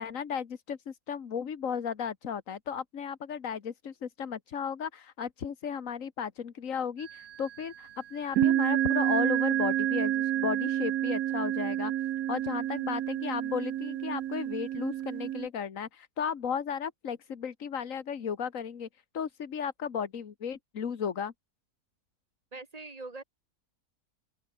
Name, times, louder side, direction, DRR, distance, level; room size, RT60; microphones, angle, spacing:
voice 1, 0.0-11.9 12.3-21.3, left 7 dB, 65° left, 1.7 m, -35 dB
sound 1, 7.0-7.5 8.3-15.5, right 12 dB, 80° right, 1.2 m, -29 dB
voice 2, 22.5-23.2, right 3 dB, 25° right, 1.4 m, -42 dB
open air
omnidirectional pair, 1.5 m